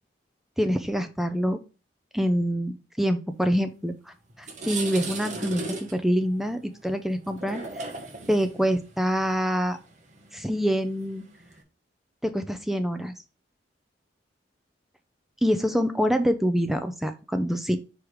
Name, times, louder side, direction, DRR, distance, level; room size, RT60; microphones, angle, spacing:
voice 1, 0.6-1.6 2.1-7.8 8.3-9.8 10.3-11.2 12.2-13.1 15.4-17.8, equal, ahead, 8 dB, 0.5 m, -26 dB
sound 1, 3.8-3.9 4.3-11.6, right 3 dB, 40° right, 1.3 m, -38 dB
5.0 x 4.7 x 4.9 m, 0.33 s
head